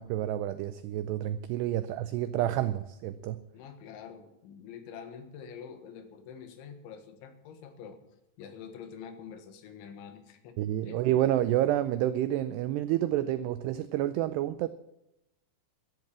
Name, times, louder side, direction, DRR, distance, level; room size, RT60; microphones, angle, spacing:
voice 1, 0.0-3.4 10.6-14.7, right 13 dB, 90° right, 13 dB, 2.3 m, -29 dB
voice 2, 3.5-8.0 8.4-11.0, left 7 dB, 80° left, 8 dB, 3.8 m, -46 dB
13.5 x 10.5 x 7.4 m, 0.85 s
omnidirectional pair, 5.5 m